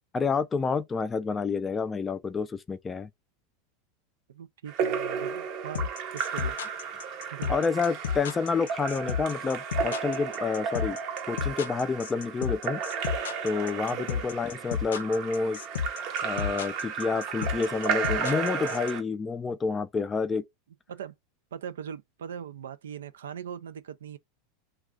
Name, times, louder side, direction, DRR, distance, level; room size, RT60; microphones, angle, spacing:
voice 1, 0.1-3.1 7.5-11.0 11.3-12.8 13.4-15.6 16.2-20.4, left 4 dB, 20° left, 0.4 m, -29 dB
voice 2, 4.3-6.6 7.3-7.5 13.9-14.3 20.9-21.1 21.5-24.2, right 8 dB, 90° right, 0.3 m, -40 dB
Splash splatter / Drip / Trickle dribble, 4.7-19.0, right 6 dB, 55° right, 0.7 m, -33 dB
sound 1, 5.7-18.9, left 8 dB, 85° left, 0.4 m, -32 dB
2.3 x 2.3 x 3.6 m
hypercardioid pair, 110°, 0 cm